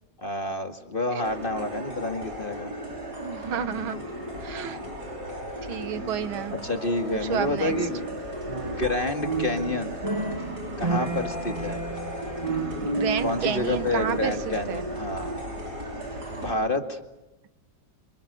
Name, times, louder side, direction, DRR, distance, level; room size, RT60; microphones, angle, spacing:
voice 1, 0.2-2.7 6.5-8.0 8.6-10.0 10.8-11.8 13.2-15.4 16.3-17.0, left 2 dB, 25° left, 6 dB, 2.3 m, -29 dB
sound 1, 1.2-16.5, equal, 50° right, 5.7 m, -36 dB
voice 2, 3.2-4.0 4.4-4.8 5.7-6.5 7.1-7.7 12.8-14.8, right 8 dB, 80° right, 13 dB, 2.0 m, -30 dB
sound 2, 7.6-14.5, right 3 dB, 15° right, 2.0 m, -31 dB
29.5 x 27.0 x 6.9 m, 1.0 s
omnidirectional pair, 2.2 m